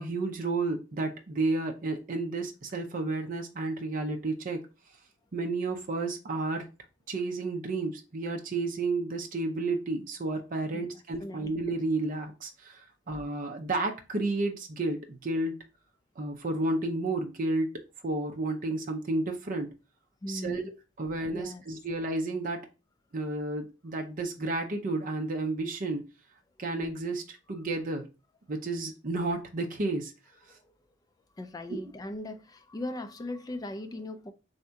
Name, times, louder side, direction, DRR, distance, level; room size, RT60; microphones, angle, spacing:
voice 1, 0.0-4.7 5.3-6.7 7.1-12.8 13.1-15.6 16.2-19.7 20.3-20.6 21.0-22.7 23.1-26.0 26.6-28.0 28.5-30.1 31.7-31.8, right 2 dB, 45° right, 0.6 m, -31 dB
voice 2, 20.2-20.7 21.3-21.6 26.6-26.7 27.5-27.6 30.3-30.6 31.3-34.3, left 1 dB, 20° left, 0.3 m, -39 dB
3.5 x 2.7 x 4.4 m
head